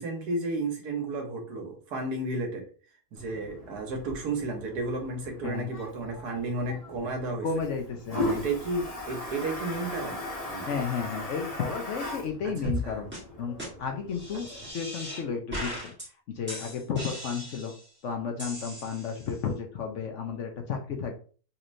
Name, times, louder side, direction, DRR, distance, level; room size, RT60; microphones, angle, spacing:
voice 1, 0.0-2.7 3.1-7.5 8.1-10.7 12.4-13.0, right 2 dB, 85° right, 2 dB, 1.5 m, -33 dB
Toilet flush, 3.2-14.7, left 1 dB, 30° left, 0.8 m, -38 dB
voice 2, 7.4-8.4 10.7-13.1 13.4-15.9 16.3-17.7 18.0-21.1, left 6 dB, 60° left, 3 dB, 0.9 m, -33 dB
sound 1, 12.6-12.8 13.1-13.2 13.6-13.7 14.1-15.2 15.5-16.1 16.5-17.9 18.4-19.3, equal, 5° right, 1.5 m, -37 dB
4.1 x 3.1 x 2.6 m, 0.40 s
omnidirectional pair, 1.6 m